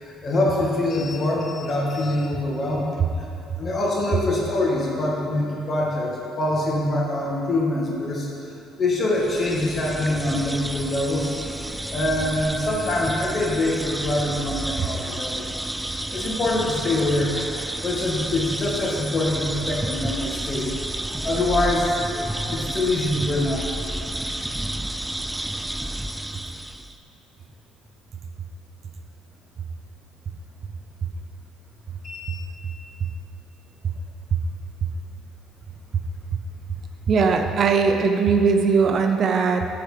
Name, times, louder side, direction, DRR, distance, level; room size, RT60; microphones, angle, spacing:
voice 1, 0.0-2.9 3.2-3.3 3.6-8.3 8.8-11.3 11.9-15.5 16.1-17.3 17.8-20.7 21.2-21.9 22.4-23.7 32.0-32.4, left 1 dB, 35° left, -3 dB, 2.0 m, -24 dB
sound 1, 9.2-27.0, right 1 dB, 5° right, 0.4 m, -31 dB
voice 2, 37.1-39.7, right 5 dB, 50° right, 5 dB, 0.6 m, -20 dB
13.0 x 4.8 x 5.1 m, 2.8 s
cardioid pair, 110°, 0 cm